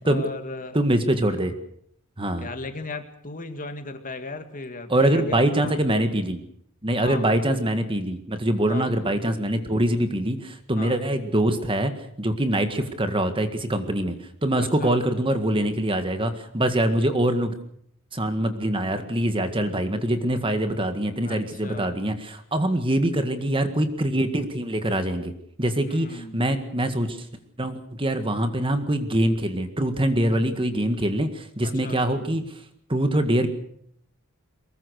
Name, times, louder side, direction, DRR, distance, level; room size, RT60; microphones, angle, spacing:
voice 1, 0.0-0.8 2.4-5.8 7.0-7.2 8.7-8.9 10.8-11.0 14.6-15.0 21.2-22.0 25.8-26.4 31.6-32.3, left 3 dB, 35° left, 8 dB, 2.2 m, -37 dB
voice 2, 0.7-1.5 2.2-2.5 4.9-6.4 6.8-11.9 12.2-14.2 14.4-17.5 18.1-25.3 25.6-27.3 27.6-32.6 32.9-33.5, right 1 dB, 25° right, 8 dB, 1.9 m, -24 dB
23.0 x 21.0 x 6.5 m, 0.68 s
head